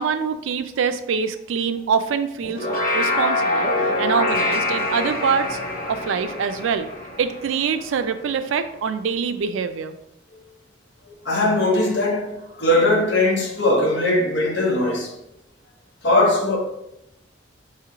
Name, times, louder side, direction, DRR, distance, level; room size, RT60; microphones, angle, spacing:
voice 1, 0.0-2.7 2.9-3.7 4.0-5.6 5.9-6.9 7.2-10.0, right 6 dB, 85° right, 0.4 m, -24 dB
sound 1, 2.4-8.0, left 2 dB, 45° left, 1.1 m, -25 dB
voice 2, 11.2-15.1 16.0-16.6, left 1 dB, 65° left, 0.8 m, -20 dB
4.8 x 3.0 x 3.0 m
head